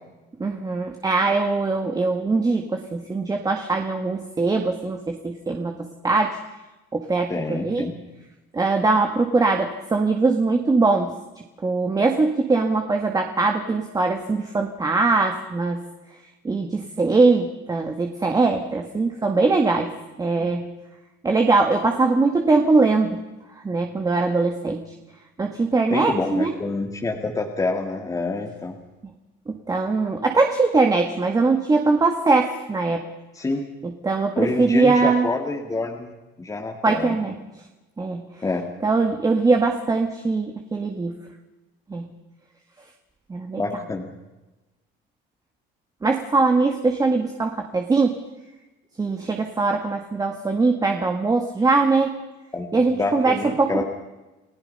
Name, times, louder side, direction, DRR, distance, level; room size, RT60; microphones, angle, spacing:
voice 1, 0.4-6.4 6.9-7.9 8.5-11.1 11.6-15.8 16.4-19.9 20.2-20.7 21.2-23.2 23.6-24.8 25.4-26.5 29.5-33.0 33.8-35.3 36.8-37.4 38.0-38.2 38.8-41.2 41.9-42.1 43.3-43.8 46.0-48.2 49.0-52.2 52.7-53.8, right 3 dB, 20° right, 4 dB, 1.9 m, -21 dB
voice 2, 7.3-8.0 20.4-20.5 24.7-24.8 25.9-28.8 33.3-33.7 34.4-36.1 36.4-37.2 38.4-38.6 43.6-44.1 52.5-53.8, left 3 dB, 15° left, 1 dB, 2.1 m, -27 dB
29.5 x 17.0 x 5.6 m, 1.1 s
cardioid pair, 125°, 19 cm